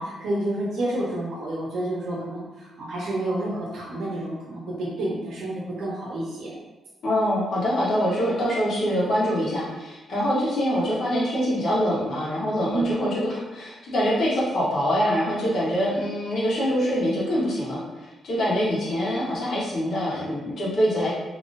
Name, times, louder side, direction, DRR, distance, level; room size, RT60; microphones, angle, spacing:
voice 1, 0.0-6.5 12.7-12.9, right 1 dB, 80° right, -6 dB, 0.8 m, -29 dB
voice 2, 7.0-21.1, equal, 60° left, -7 dB, 1.3 m, -24 dB
3.8 x 2.9 x 2.5 m, 1.1 s
cardioid pair, 145°, 0 cm